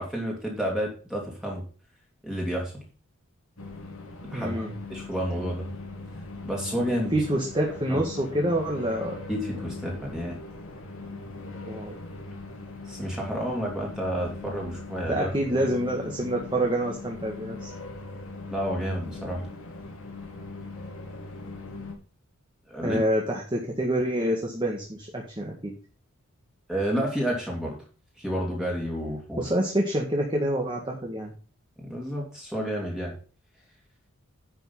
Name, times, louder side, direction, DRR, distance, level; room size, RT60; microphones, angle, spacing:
voice 1, 0.0-1.6 2.2-2.8 4.2-4.6 4.9-5.7 6.4-7.2 7.9-8.0 9.3-10.4 12.9-15.3 18.5-19.5 22.7-23.0 26.7-27.8 28.2-29.5 31.8-33.1, equal, 5° right, -2 dB, 2.5 m, -30 dB
sound 1, 3.6-21.9, left 3 dB, 85° left, 2.7 m, -40 dB
voice 2, 4.3-4.7 7.1-9.2 11.6-11.9 15.1-17.7 22.8-25.7 29.4-31.3, right 1 dB, 20° right, 0 dB, 1.8 m, -27 dB
10.5 x 5.7 x 5.5 m, 0.37 s
head